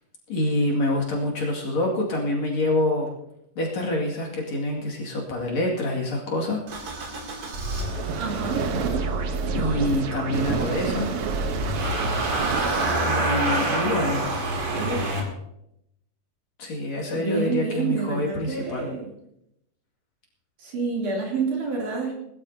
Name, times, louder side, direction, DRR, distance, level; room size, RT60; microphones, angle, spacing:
voice 1, 0.3-3.1 3.6-6.6 9.5-11.1 13.0-14.3 16.6-18.9, left 1 dB, 50° left, -2 dB, 3.3 m, -26 dB
Motor vehicle (road) / Engine starting, 6.7-15.2, right 2 dB, 45° right, 2.8 m, -28 dB
sound 1, 7.7-13.5, right 5 dB, 80° right, 1.2 m, -30 dB
voice 2, 8.1-9.1 10.7-11.2 14.7-15.0 17.1-19.1 20.6-22.1, right 4 dB, 60° right, -2 dB, 4.4 m, -29 dB
20.5 x 13.0 x 2.8 m, 0.80 s
omnidirectional pair, 4.1 m